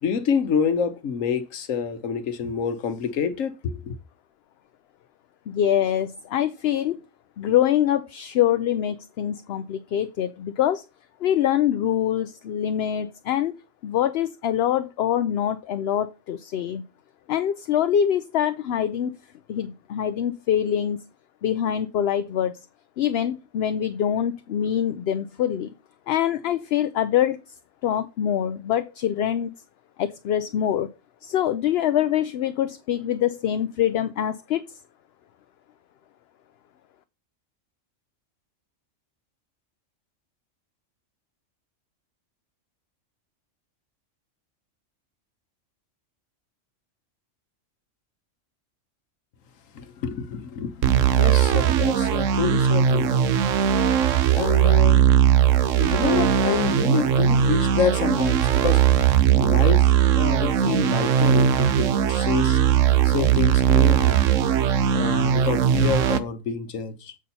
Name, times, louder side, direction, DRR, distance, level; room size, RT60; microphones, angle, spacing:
voice 1, 0.0-4.0 49.7-53.2 54.3-55.1 55.8-58.9 59.4-62.6 63.0-64.3 64.9-67.2, left 6 dB, 85° left, 1.3 m, -27 dB
voice 2, 5.5-7.0 7.4-10.8 11.2-13.5 13.8-16.8 17.3-19.2 19.5-21.0 21.4-22.5 23.0-25.7 26.1-27.4 27.8-29.5 30.0-30.9 31.2-34.8, left 10 dB, 60° left, 0.7 m, -24 dB
sound 1, 50.8-66.2, right 9 dB, 75° right, 1.0 m, -19 dB
7.4 x 4.2 x 5.4 m
omnidirectional pair, 1.3 m